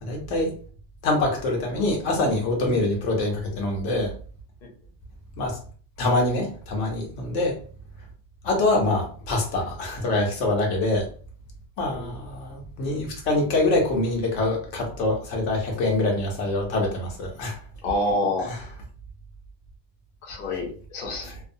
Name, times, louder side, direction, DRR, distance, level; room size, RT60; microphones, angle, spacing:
voice 1, 0.0-0.5 1.0-4.1 5.4-5.6 6.0-7.6 8.4-11.1 11.8-17.6 18.5-18.6, left 2 dB, 75° left, 1 dB, 1.1 m, -25 dB
voice 2, 11.9-12.2 17.8-18.5 20.2-21.4, left 1 dB, 55° left, 0 dB, 0.8 m, -28 dB
2.7 x 2.0 x 2.5 m, 0.42 s
omnidirectional pair, 1.3 m